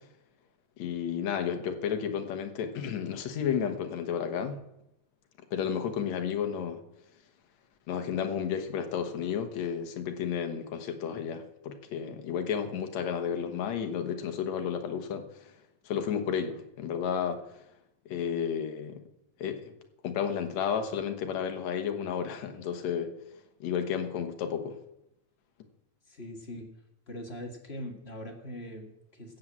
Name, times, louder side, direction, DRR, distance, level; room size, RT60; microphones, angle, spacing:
voice 1, 0.8-4.6 5.5-6.8 7.9-15.5 15.9-17.6 18.1-19.0 19.4-19.7 20.0-23.1 23.6-24.8, left 7 dB, 65° left, 7 dB, 2.4 m, -32 dB
voice 2, 26.1-26.7 27.1-29.4, left 1 dB, 30° left, 2 dB, 1.3 m, -41 dB
14.5 x 7.7 x 7.4 m, 0.87 s
omnidirectional pair, 3.5 m